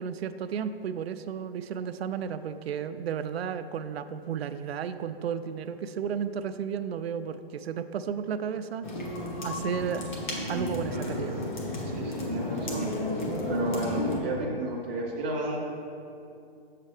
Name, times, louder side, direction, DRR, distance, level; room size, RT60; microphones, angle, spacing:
voice 1, 0.0-8.9 9.4-10.1 10.5-11.4, right 7 dB, 85° right, 10 dB, 0.5 m, -33 dB
sound 1, 8.8-14.2, left 1 dB, 50° left, 1.3 m, -32 dB
voice 2, 11.8-12.9 13.5-15.6, right 2 dB, 15° right, -5 dB, 0.6 m, -32 dB
7.2 x 6.6 x 3.3 m, 2.6 s
hypercardioid pair, 175°, 30 cm